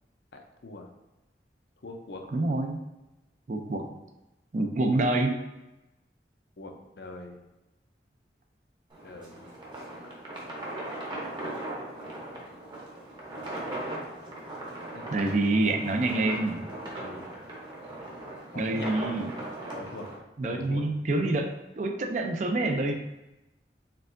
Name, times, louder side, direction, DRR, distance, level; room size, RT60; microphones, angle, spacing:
voice 1, 0.3-0.9 1.8-2.2 6.6-7.4 9.0-9.6 12.3-12.5 14.9-15.1 17.0-17.5 18.5-19.0 19.7-20.1 20.4-20.8 21.2-21.3, left 2 dB, 70° left, 3 dB, 0.6 m, -43 dB
voice 2, 2.3-2.8 3.5-3.9 4.5-5.4 15.1-16.7 18.5-19.3 20.4-22.9, right 2 dB, 45° right, 4 dB, 0.4 m, -27 dB
sound 1, 8.9-20.2, right 1 dB, 25° right, 0.8 m, -39 dB
4.5 x 3.5 x 2.5 m, 0.99 s
head